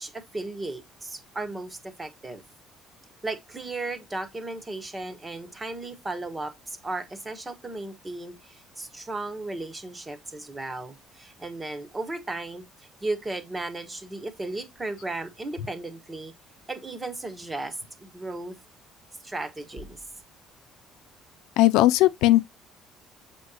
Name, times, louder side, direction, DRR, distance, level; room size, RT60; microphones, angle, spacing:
voice 1, 0.0-2.4 3.2-12.6 13.0-16.3 16.7-18.6 19.2-20.0, right 2 dB, 15° right, 1.3 m, -35 dB
voice 2, 21.6-22.4, left 16 dB, 90° left, 0.6 m, -18 dB
7.9 x 5.3 x 2.8 m
cardioid pair, 170°, 0 cm